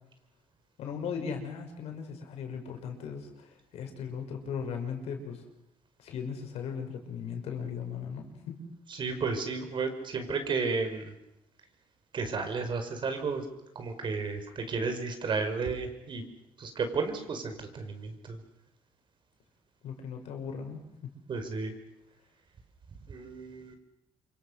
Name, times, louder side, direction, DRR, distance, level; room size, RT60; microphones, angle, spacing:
voice 1, 0.8-5.4 6.0-8.6 19.8-20.8, left 6 dB, 75° left, 4 dB, 6.0 m, -37 dB
voice 2, 9.0-11.1 12.1-13.4 13.8-16.2 16.6-18.4 21.3-21.7 23.1-23.8, right 4 dB, 45° right, 7 dB, 5.4 m, -33 dB
28.0 x 24.5 x 6.6 m, 0.85 s
cardioid pair, 95°, 11 cm